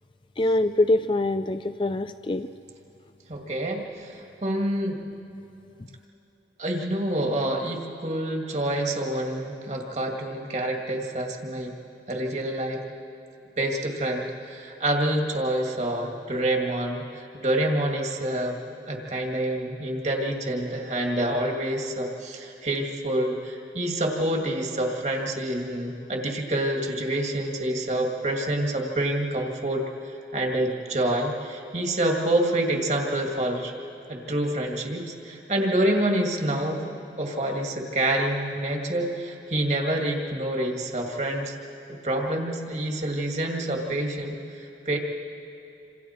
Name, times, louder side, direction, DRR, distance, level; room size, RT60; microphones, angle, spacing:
voice 1, 0.4-2.5, left 2 dB, 30° left, 11 dB, 0.4 m, -24 dB
voice 2, 3.3-5.0 6.6-11.8 12.1-12.8 13.6-18.6 18.9-29.8 30.3-33.7 34.1-36.9 37.2-41.5 42.0-45.0, right 1 dB, 40° right, 1 dB, 2.1 m, -27 dB
28.0 x 26.0 x 4.5 m, 3.0 s
head